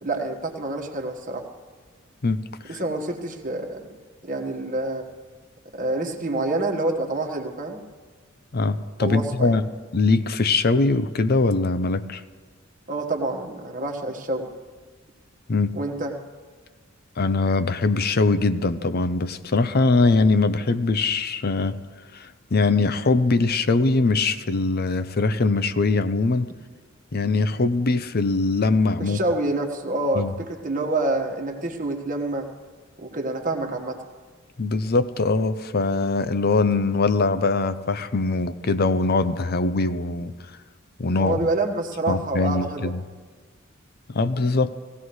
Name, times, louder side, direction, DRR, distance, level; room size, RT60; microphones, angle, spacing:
voice 1, 0.0-1.5 2.7-3.8 4.2-5.0 5.7-7.8 9.0-9.6 12.9-14.5 15.7-16.1 29.0-32.5 33.0-34.0 41.1-42.9, right 2 dB, 40° right, 2 dB, 1.5 m, -27 dB
voice 2, 2.2-2.8 8.5-9.6 9.9-12.2 15.5-15.7 17.2-21.8 22.1-26.5 27.1-29.2 30.1-30.3 34.6-40.3 41.0-41.5 42.1-43.0 44.1-44.7, left 3 dB, 50° left, 12 dB, 0.6 m, -22 dB
19.0 x 16.0 x 3.2 m, 1.5 s
head